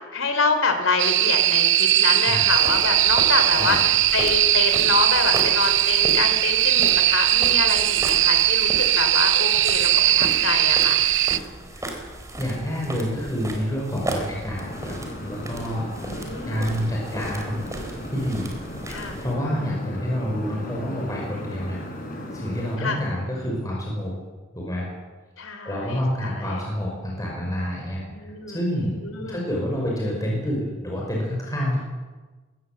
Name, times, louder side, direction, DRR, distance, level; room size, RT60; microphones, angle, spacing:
voice 1, 0.1-11.0 16.0-16.8 18.9-19.2 22.8-23.1 25.4-26.6 28.1-28.7 29.0-29.5, left 4 dB, 80° left, 7 dB, 3.5 m, -27 dB
sound 1, 1.0-11.4, right 13 dB, 65° right, 0.7 m, -19 dB
sound 2, 2.5-19.3, right 1 dB, 15° right, 3.7 m, -36 dB
voice 2, 11.7-12.1 12.4-16.1 16.5-17.7 18.1-18.5 19.2-21.8 22.3-24.1 24.5-24.9 25.4-28.0 28.5-29.0 29.3-31.8, equal, 15° left, -3 dB, 5.7 m, -28 dB
sound 3, 14.6-22.8, left 1 dB, 45° left, 5.6 m, -36 dB
23.0 x 18.5 x 7.6 m, 1.3 s
head